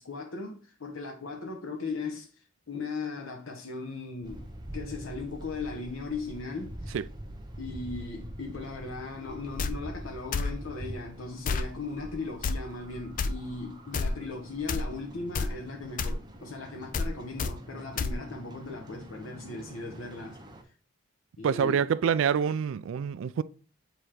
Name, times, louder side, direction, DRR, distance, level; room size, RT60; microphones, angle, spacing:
voice 1, 0.0-4.5 4.7-7.0 7.6-20.4 21.4-21.8, left 3 dB, 75° left, 0.9 m, -38 dB
sound 1, 4.2-20.6, right 1 dB, 20° right, 0.7 m, -45 dB
sound 2, 9.6-9.7 10.3-10.5 11.4-11.7 12.4-12.6 13.2-13.3 13.9-14.1 14.7-14.9 15.3-15.5 16.0-16.2 16.9-17.1 17.4-17.5 18.0-18.1, left 4 dB, 40° left, 0.4 m, -28 dB
voice 2, 21.4-23.4, right 7 dB, 70° right, 0.3 m, -26 dB
7.9 x 2.9 x 4.9 m
head